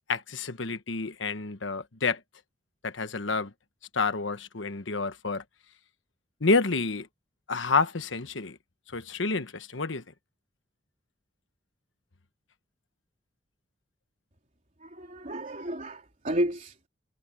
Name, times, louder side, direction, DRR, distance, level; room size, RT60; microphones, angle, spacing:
voice 1, 0.1-2.2 2.8-3.5 3.9-5.4 6.4-7.1 7.5-8.6 8.9-10.0, left 4 dB, 75° left, 1.3 m, -29 dB
voice 2, 14.8-16.9, right 1 dB, 40° right, 3.6 m, -32 dB
head